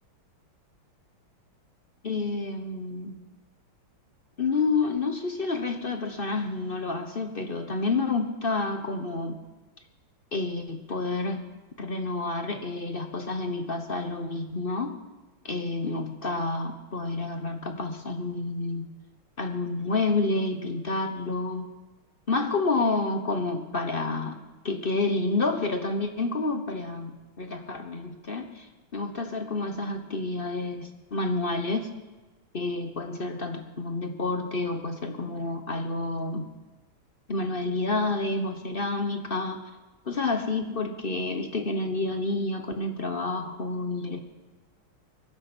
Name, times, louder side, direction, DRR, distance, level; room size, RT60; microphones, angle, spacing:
voice 1, 2.0-3.1 4.4-9.4 10.3-11.4 11.8-14.9 15.4-18.9 19.4-21.7 22.3-24.4 24.6-27.1 27.4-28.7 28.9-31.9 32.5-36.5 37.3-39.6 40.1-44.2, left 3 dB, 40° left, 6 dB, 0.9 m, -29 dB
22.5 x 10.0 x 6.2 m, 1.2 s
omnidirectional pair, 2.3 m